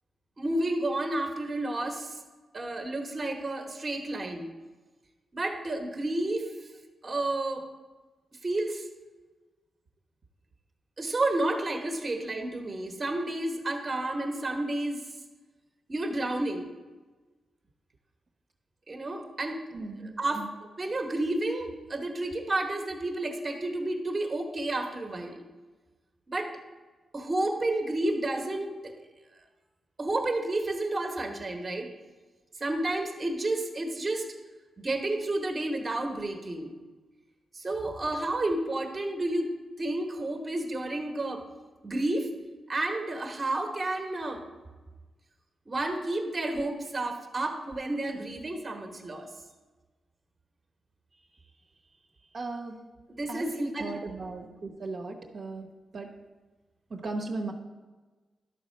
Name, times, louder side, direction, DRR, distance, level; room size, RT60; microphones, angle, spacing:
voice 1, 0.4-2.2 2.5-4.5 5.3-6.7 7.0-7.7 8.4-8.9 11.0-15.0 15.9-16.7 18.9-20.5 20.8-25.4 26.3-26.5 27.1-28.9 30.0-31.9 32.6-34.3 34.8-36.7 37.5-41.4 41.8-42.3 42.7-44.4 45.7-49.3 53.1-53.9, right 2 dB, 30° right, 4 dB, 1.2 m, -31 dB
voice 2, 19.7-20.5 52.3-52.8 53.3-55.7 55.9-56.1 56.9-57.5, right 2 dB, 55° right, 0 dB, 1.0 m, -36 dB
11.5 x 4.2 x 6.5 m, 1.3 s
wide cardioid pair, 115°, 0 cm